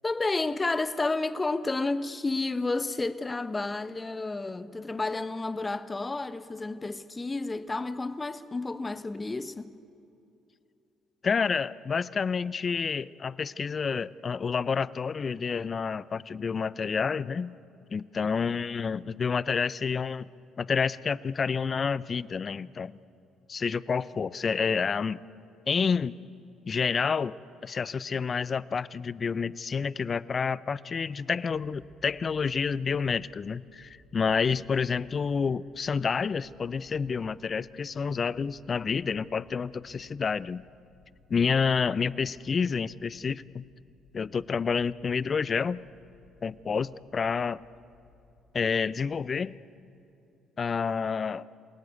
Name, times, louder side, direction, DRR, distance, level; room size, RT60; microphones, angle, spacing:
voice 1, 0.0-9.8, left 3 dB, 25° left, 1.1 m, -31 dB
voice 2, 11.2-17.5 17.9-20.3 20.6-23.0 23.5-25.2 25.7-26.2 26.7-27.4 27.6-40.6 41.3-43.6 44.1-45.8 46.4-47.6 48.5-49.6 50.6-51.5, left 5 dB, 45° left, 0.6 m, -29 dB
sound 1, 47.3-49.2, left 2 dB, 80° left, 2.3 m, -60 dB
28.0 x 18.0 x 8.2 m
hypercardioid pair, 55°, 0 cm